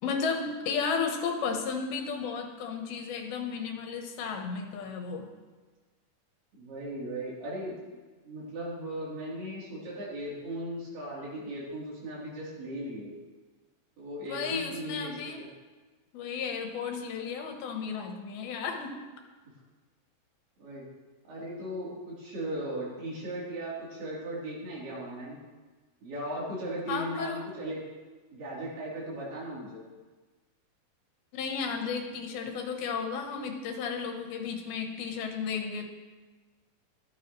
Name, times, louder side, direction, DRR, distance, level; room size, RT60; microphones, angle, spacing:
voice 1, 0.0-5.3 14.3-15.4 16.1-19.0 26.9-27.5 31.3-35.9, left 5 dB, 80° left, 3 dB, 3.1 m, -33 dB
voice 2, 6.5-7.8 8.3-13.1 14.0-15.1 15.4-15.5 20.6-20.8 21.3-25.4 26.0-27.8 28.3-29.8, right 1 dB, 85° right, -7 dB, 5.5 m, -37 dB
14.0 x 12.0 x 3.2 m, 1.3 s
omnidirectional pair, 4.3 m